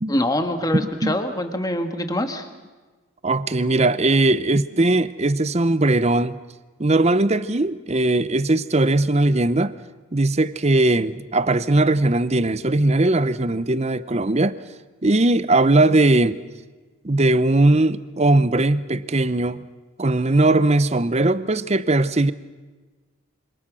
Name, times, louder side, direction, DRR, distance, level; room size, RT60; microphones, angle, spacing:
voice 1, 0.1-2.4, left 1 dB, 15° left, 7 dB, 1.7 m, -24 dB
voice 2, 0.7-1.2 3.2-6.4 6.8-9.7 10.1-14.6 15.0-16.4 17.0-19.6 20.0-22.3, right 2 dB, 30° right, 15 dB, 0.7 m, -19 dB
27.0 x 26.0 x 6.3 m, 1.3 s
head